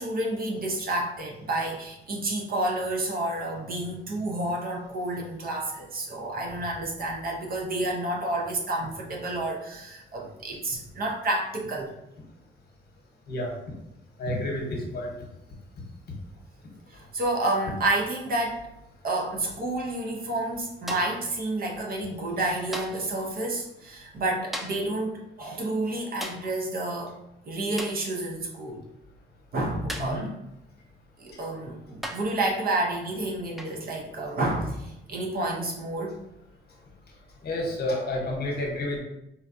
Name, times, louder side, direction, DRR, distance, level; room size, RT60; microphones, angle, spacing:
voice 1, 0.0-11.9 16.9-18.7 19.0-27.2 27.5-28.8 29.5-30.3 31.2-36.2, right 2 dB, 50° right, 0 dB, 0.7 m, -30 dB
voice 2, 14.2-15.1 30.0-30.3 37.4-39.0, left 1 dB, 55° left, -1 dB, 1.0 m, -30 dB
sound 1, 20.9-21.3 22.7-23.1 24.5-24.9 26.2-26.5 27.8-28.1 29.9-30.2 31.3-31.4 32.0-32.4 33.6-33.8 35.4-35.6, equal, ahead, 0.3 m, -37 dB
3.9 x 2.2 x 2.6 m, 0.84 s
cardioid pair, 90°, 20 cm